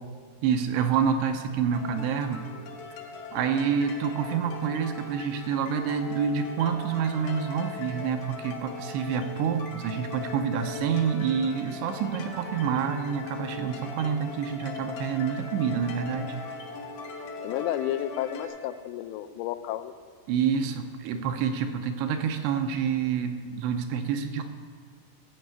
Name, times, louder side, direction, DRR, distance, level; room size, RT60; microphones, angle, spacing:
voice 1, 0.4-2.5 3.3-16.4 20.3-24.5, right 7 dB, 85° right, 6 dB, 2.8 m, -27 dB
sound 1, 1.7-18.5, left 3 dB, 70° left, 1.9 m, -40 dB
voice 2, 17.4-19.9, left 12 dB, 90° left, 11 dB, 2.8 m, -31 dB
15.0 x 5.5 x 8.0 m, 2.1 s
omnidirectional pair, 5.0 m